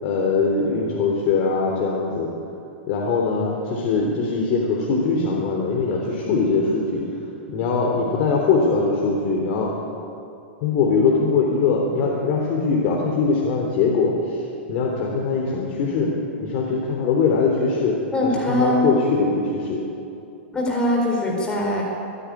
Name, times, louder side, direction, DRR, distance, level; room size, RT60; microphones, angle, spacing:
voice 1, 0.0-2.3 2.9-7.0 7.5-9.7 10.6-14.4 14.7-16.1 16.4-18.0 18.5-19.8, left 4 dB, 45° left, -1 dB, 3.4 m, -21 dB
voice 2, 18.1-18.9 20.5-21.8, left 1 dB, 15° left, -2 dB, 4.2 m, -22 dB
26.0 x 10.0 x 9.9 m, 2.7 s
hypercardioid pair, 145°, 7 cm